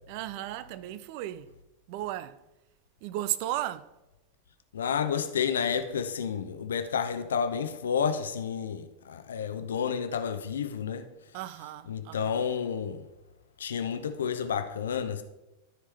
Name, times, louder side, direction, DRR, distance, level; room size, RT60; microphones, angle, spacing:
voice 1, 0.1-1.5 1.9-2.4 3.0-3.9 11.3-12.4, right 13 dB, 45° right, 0.4 m, -35 dB
voice 2, 4.7-11.0 11.9-13.0 13.6-15.2, left 7 dB, 65° left, 0.7 m, -30 dB
13.5 x 4.5 x 3.3 m
figure-of-eight pair, 90°, 0 cm